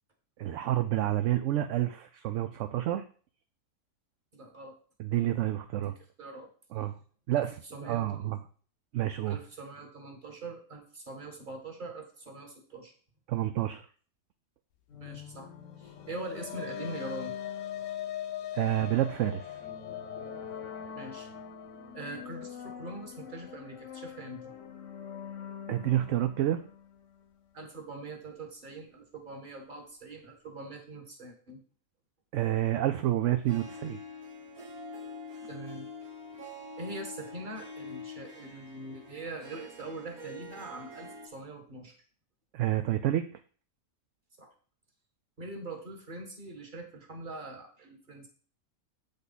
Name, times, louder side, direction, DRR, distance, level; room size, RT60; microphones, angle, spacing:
voice 1, 0.4-3.0 5.0-5.9 6.7-6.9 7.3-7.5 7.8-8.4 8.9-9.4 13.3-13.9 18.5-19.6 25.7-26.6 32.3-34.0 42.5-43.4, right 13 dB, 65° right, 8 dB, 0.8 m, -29 dB
voice 2, 4.3-4.8 6.2-6.5 7.4-7.5 7.7-8.3 9.3-12.9 15.0-15.5 15.8-17.4 20.9-21.3 21.9-24.5 27.5-31.6 35.5-35.9 36.8-41.9 44.4-44.5 45.4-48.3, right 2 dB, 35° right, 2 dB, 1.7 m, -43 dB
sound 1, 14.9-27.4, left 7 dB, 65° left, 1.1 m, -46 dB
sound 2, 15.8-24.4, left 11 dB, 85° left, 1.2 m, -42 dB
Harp, 33.4-41.3, left 2 dB, 80° right, 1.9 m, -45 dB
8.1 x 5.3 x 4.1 m, 0.42 s
omnidirectional pair, 1.5 m